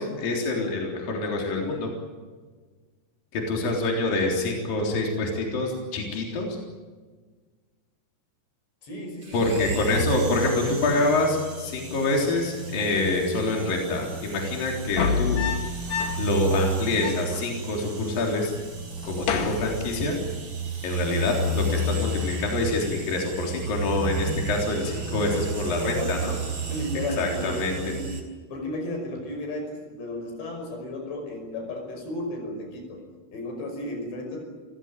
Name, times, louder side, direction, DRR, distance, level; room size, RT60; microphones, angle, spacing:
voice 1, 0.0-1.9 3.3-6.6 9.3-15.4 16.2-18.5 19.0-20.2 20.8-26.4 27.2-27.9, left 2 dB, 55° left, 0 dB, 5.3 m, -26 dB
voice 2, 8.8-9.8 25.8-26.3 26.6-28.2 28.5-33.0 33.3-34.4, left 2 dB, 85° left, 4 dB, 7.7 m, -34 dB
sound 1, 9.2-28.2, right 3 dB, 30° right, 5.2 m, -32 dB
sound 2, 14.8-16.4 16.7-16.8 17.0-18.0 18.3-18.6 19.0-20.4 21.6-22.0, left 6 dB, 70° left, 4.0 m, -29 dB
29.0 x 16.5 x 9.2 m, 1.4 s
omnidirectional pair, 4.9 m